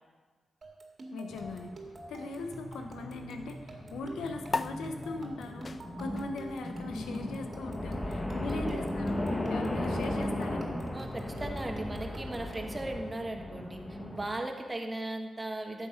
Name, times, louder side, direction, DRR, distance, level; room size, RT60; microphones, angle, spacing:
sound 1, 0.6-12.9, right 2 dB, 55° right, 1.9 m, -48 dB
voice 1, 1.1-1.7 2.1-10.7, left 3 dB, 90° left, 5 dB, 1.0 m, -40 dB
sound 2, 1.3-14.3, left 1 dB, 25° left, 1.4 m, -37 dB
sound 3, 4.5-11.3, left 4 dB, 45° left, 0.3 m, -42 dB
voice 2, 8.5-8.8 10.9-15.9, right 1 dB, 25° right, 3 dB, 1.5 m, -37 dB
11.5 x 7.7 x 5.2 m, 1.5 s
cardioid pair, 65°, 0 cm